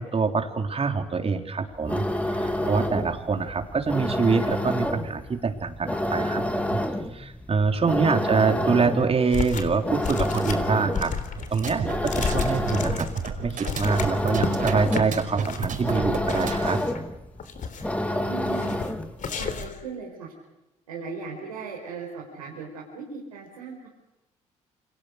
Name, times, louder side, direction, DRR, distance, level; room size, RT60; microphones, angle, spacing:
voice 1, 0.0-6.4 6.7-6.8 7.1-11.1 11.5-13.1 13.4-16.8, right 4 dB, 35° right, 5 dB, 3.8 m, -25 dB
sound 1, 1.7-19.2, left 1 dB, 10° left, 3.0 m, -29 dB
voice 2, 7.7-8.0 18.1-19.0 19.3-20.3 20.9-23.9, right 5 dB, 90° right, -3 dB, 4.7 m, -38 dB
sound 2, 9.3-9.8 10.0-14.5 14.9-15.0 15.4-15.8 16.3-17.0 17.4-18.0 18.5-18.9 19.2-19.8, left 6 dB, 50° left, 3.5 m, -32 dB
sound 3, 11.4-16.7, right 6 dB, 50° right, 5.4 m, -32 dB
29.5 x 27.0 x 6.7 m, 0.97 s
hypercardioid pair, 50°, 17 cm